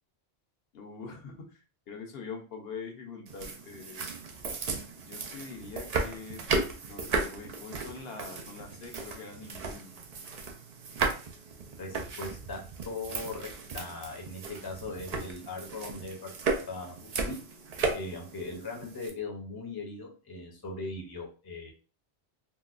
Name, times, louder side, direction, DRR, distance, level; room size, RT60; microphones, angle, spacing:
voice 1, 0.7-4.1 4.9-6.4 6.9-9.9, left 4 dB, 65° left, 3 dB, 1.0 m, -44 dB
sound 1, 3.3-19.1, right 4 dB, 50° right, 0.5 m, -35 dB
voice 2, 11.8-12.6 12.9-13.5 13.7-16.3 16.7-17.4 17.9-21.7, left 3 dB, 25° left, 0 dB, 0.7 m, -39 dB
3.8 x 2.2 x 2.4 m, 0.36 s
omnidirectional pair, 1.1 m